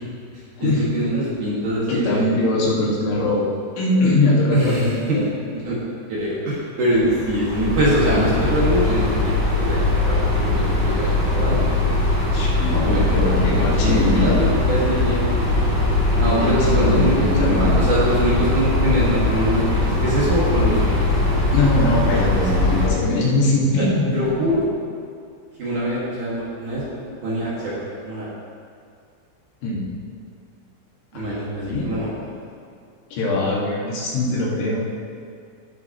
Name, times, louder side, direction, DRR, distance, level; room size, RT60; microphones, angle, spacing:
voice 1, 0.3-2.3 4.5-5.3 5.6-5.8 6.1-11.7 12.8-15.3 16.2-21.7 22.3-22.6 23.7-23.8 24.1-24.7 25.6-28.3 31.1-32.5, equal, 50° right, -8 dB, 2.8 m, -23 dB
voice 2, 1.9-3.5 3.8-5.2 12.3-14.3 16.4-17.9 21.5-24.2 29.6-29.8 31.1-31.9 33.1-34.8, left 2 dB, 80° left, -5 dB, 4.3 m, -22 dB
sound 1, 6.9-22.9, left 2 dB, 5° left, 1.2 m, -20 dB
17.5 x 8.1 x 3.0 m, 2.3 s
omnidirectional pair, 5.4 m